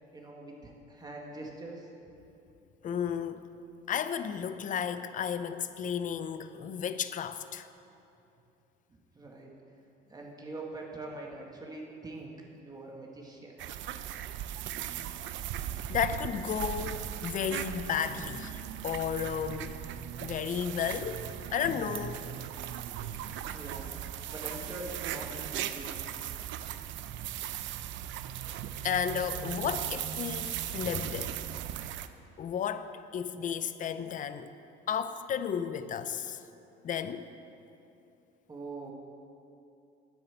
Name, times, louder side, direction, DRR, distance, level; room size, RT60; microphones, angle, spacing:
voice 1, 0.1-1.9 8.9-9.5 10.1-12.3 12.6-13.6 23.4-24.0 24.3-26.1 38.5-38.9, right 2 dB, 20° right, -1 dB, 1.9 m, -43 dB
voice 2, 2.8-3.4 3.9-7.7 15.9-19.8 20.2-22.3 28.8-31.5 32.4-34.5 34.9-36.4 36.8-37.3, left 8 dB, 40° left, 11 dB, 0.6 m, -33 dB
sound 1, 13.6-32.1, right 11 dB, 65° right, 0.6 m, -38 dB
9.6 x 9.6 x 7.9 m, 2.7 s
cardioid pair, 115°, 21 cm